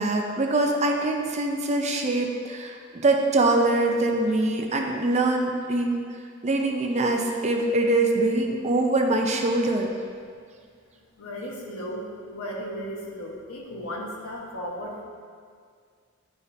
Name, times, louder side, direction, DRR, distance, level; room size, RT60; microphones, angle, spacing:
voice 1, 0.0-6.0 6.4-9.9, right 2 dB, 30° right, 2 dB, 0.6 m, -23 dB
voice 2, 11.2-15.0, equal, 70° left, -2 dB, 1.2 m, -35 dB
10.5 x 5.1 x 2.7 m, 2.1 s
head